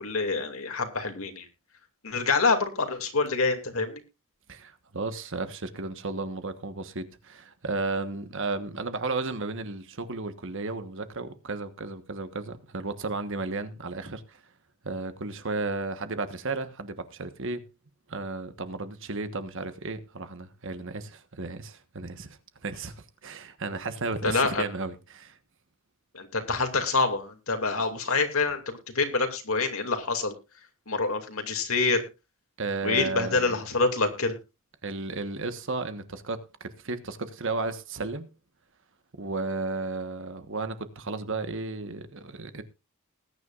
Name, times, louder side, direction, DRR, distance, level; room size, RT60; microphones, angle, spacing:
voice 1, 0.0-1.4 2.0-4.0 24.2-24.6 26.1-30.3 30.9-32.0 32.8-34.3, left 4 dB, 70° left, 2.5 m, -26 dB
voice 2, 4.5-14.4 14.8-17.6 18.1-25.4 32.6-33.6 34.8-38.3 39.2-42.6, right 3 dB, 60° right, 1.4 m, -34 dB
20.0 x 9.9 x 2.5 m
head